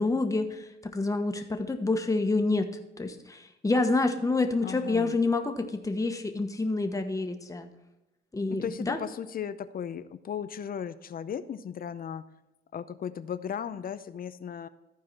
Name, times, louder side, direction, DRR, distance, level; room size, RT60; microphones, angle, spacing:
voice 1, 0.0-2.7 3.0-7.7 8.3-9.0, left 3 dB, 15° left, 5 dB, 1.2 m, -28 dB
voice 2, 4.6-5.2 8.5-12.2 12.7-14.7, left 8 dB, 45° left, 13 dB, 0.6 m, -36 dB
14.0 x 4.7 x 4.6 m, 1.0 s
cardioid pair, 90°, 20 cm